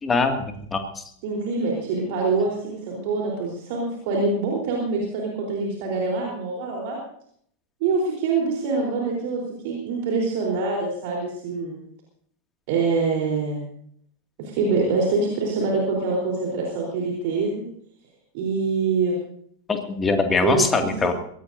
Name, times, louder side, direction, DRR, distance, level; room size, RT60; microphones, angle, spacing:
voice 1, 0.0-1.0 19.7-21.1, left 4 dB, 15° left, 5 dB, 2.3 m, -23 dB
voice 2, 1.2-7.0 7.8-11.8 12.7-13.6 14.4-17.6 18.3-19.2 20.4-21.1, right 4 dB, 50° right, -2 dB, 3.9 m, -25 dB
22.5 x 17.5 x 2.7 m, 0.66 s
figure-of-eight pair, 90°, 0 cm